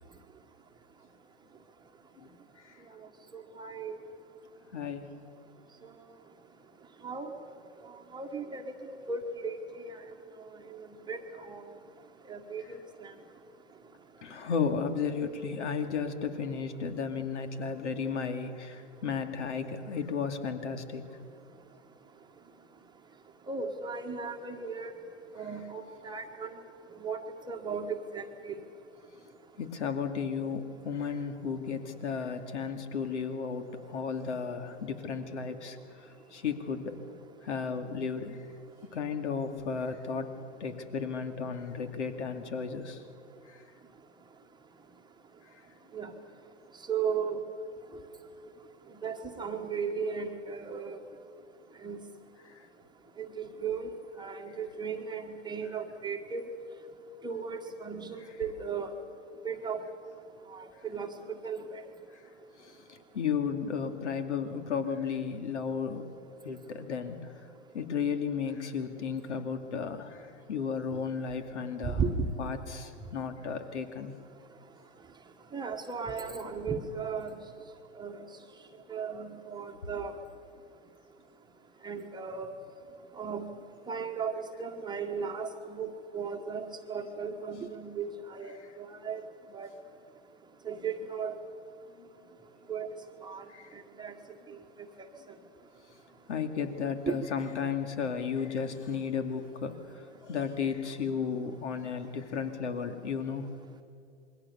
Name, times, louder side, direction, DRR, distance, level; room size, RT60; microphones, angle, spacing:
voice 1, 3.3-4.0 7.0-7.3 8.1-8.7 9.1-9.6 9.8-10.0 10.7-11.6 12.3-13.1 23.5-24.9 25.3-26.5 27.0-28.5 45.9-46.1 46.9-47.4 49.0-51.0 51.8-52.0 53.2-56.5 57.2-58.9 59.4-59.8 60.5-61.8 71.8-72.3 75.5-77.3 78.0-78.2 78.9-80.1 81.8-82.5 83.2-83.5 83.9-89.2 89.5-89.7 90.6-91.3 92.7-92.9 93.2-93.4 94.0-94.1 94.5-94.6 95.0-95.1 97.1-97.2, right 5 dB, 10° right, 3 dB, 1.4 m, -36 dB
voice 2, 4.7-5.1 14.2-21.0 29.6-37.0 37.4-38.4 38.9-40.3 40.6-43.0 43.5-43.6 62.6-66.1 66.4-67.2 67.7-72.0 72.4-74.1 88.5-88.7 92.0-92.1 93.5-93.7 96.3-103.5, left 6 dB, 65° left, 8 dB, 2.5 m, -34 dB
27.5 x 22.5 x 7.0 m, 2.4 s
hypercardioid pair, 115°, 37 cm